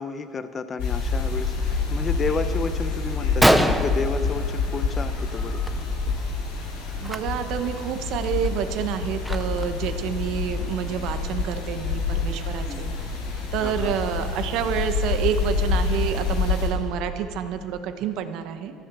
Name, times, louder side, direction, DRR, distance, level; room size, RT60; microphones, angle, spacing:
voice 1, 0.0-6.2 12.7-12.9 13.6-13.9, left 4 dB, 25° left, 11 dB, 0.8 m, -32 dB
sound 1, 0.8-16.7, left 4 dB, 85° left, 4.4 m, -27 dB
Gunshot gunfire, 3.4-5.0 5.3-5.7 6.0-6.2 7.0-7.2 7.7-7.8 8.2-9.8, equal, ahead, 0.6 m, -24 dB
voice 2, 7.0-12.9 13.5-18.7, right 9 dB, 65° right, 8 dB, 1.1 m, -28 dB
14.0 x 11.0 x 6.3 m, 2.4 s
supercardioid pair, 120°, 0 cm